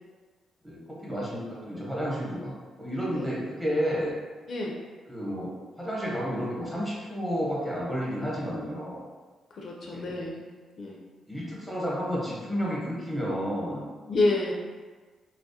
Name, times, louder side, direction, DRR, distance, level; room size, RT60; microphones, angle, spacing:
voice 1, 0.6-4.1 5.1-5.5 5.8-9.0 9.9-10.1 11.3-13.8, equal, 5° right, -6 dB, 0.9 m, -31 dB
voice 2, 9.5-10.5 10.8-11.0 14.1-14.5, left 2 dB, 55° left, -2 dB, 0.4 m, -28 dB
2.2 x 2.0 x 2.7 m, 1.4 s
cardioid pair, 80°, 0 cm